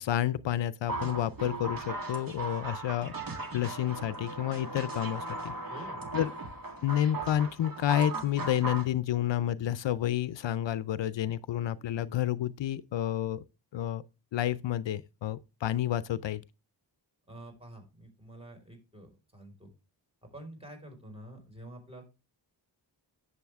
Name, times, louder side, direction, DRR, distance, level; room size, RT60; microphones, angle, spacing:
voice 1, 0.0-5.5 6.1-6.3 6.8-13.4 13.7-14.0 14.3-16.4, left 11 dB, 80° left, 0.6 m, -30 dB
sound 1, 0.9-8.9, right 2 dB, 50° right, 1.8 m, -38 dB
voice 2, 5.7-6.0 17.3-19.7 20.2-22.1, right 1 dB, 15° right, 4.6 m, -48 dB
10.5 x 7.0 x 3.5 m
cardioid pair, 60°, 43 cm